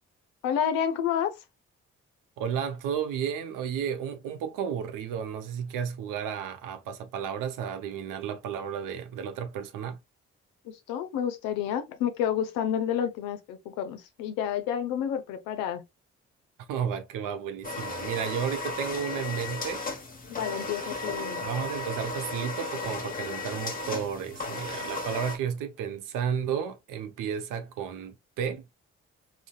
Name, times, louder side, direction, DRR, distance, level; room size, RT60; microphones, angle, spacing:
voice 1, 0.4-1.4 10.6-15.8 20.3-21.5, left 9 dB, 80° left, 0.5 m, -30 dB
voice 2, 2.4-10.0 16.7-19.8 21.4-28.7, right 8 dB, 70° right, 0.6 m, -32 dB
sound 1, 17.6-25.4, left 3 dB, 25° left, 1.0 m, -35 dB
3.7 x 2.2 x 2.3 m
hypercardioid pair, 40°, 33 cm